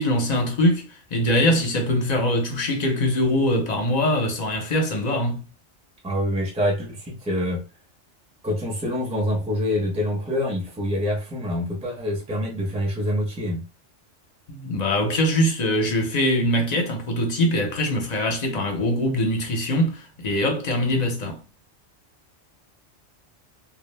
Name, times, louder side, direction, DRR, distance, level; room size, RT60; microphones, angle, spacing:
voice 1, 0.0-5.5 14.5-21.4, left 1 dB, 45° left, 0.6 m, -23 dB
voice 2, 6.0-7.6 8.4-13.6, left 1 dB, 10° right, 0.5 m, -26 dB
2.4 x 2.0 x 3.1 m
omnidirectional pair, 1.2 m